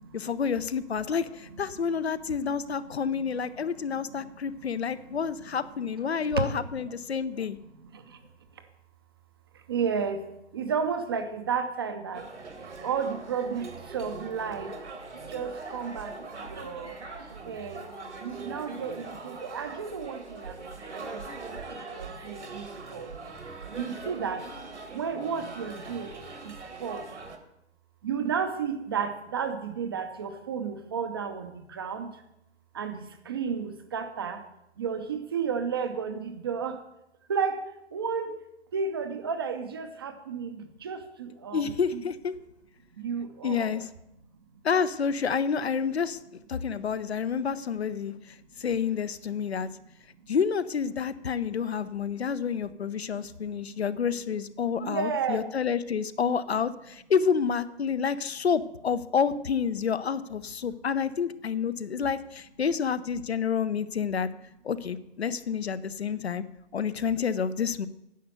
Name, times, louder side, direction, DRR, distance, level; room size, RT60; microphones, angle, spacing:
voice 1, 0.1-7.6 41.5-42.3 43.4-43.9 44.6-48.1 48.6-49.7 50.3-64.3 64.6-66.4 66.7-67.9, left 6 dB, 65° left, 14 dB, 0.7 m, -29 dB
voice 2, 3.6-4.4 4.7-4.9 6.2-6.4 7.7-8.2 9.7-10.2 10.5-12.2 12.8-14.7 15.3-17.0 17.5-17.9 18.2-21.3 21.9-23.1 23.7-24.5 24.9-26.1 26.4-27.2 28.0-32.2 32.7-34.4 34.8-36.8 37.3-37.6 37.9-38.4 38.7-42.0 43.0-43.8 54.8-55.4, right 6 dB, 20° right, 8 dB, 0.6 m, -32 dB
sound 1, 12.1-27.4, right 3 dB, 75° right, 1.9 m, -41 dB
10.5 x 6.6 x 8.0 m, 0.84 s
figure-of-eight pair, 140°, 35 cm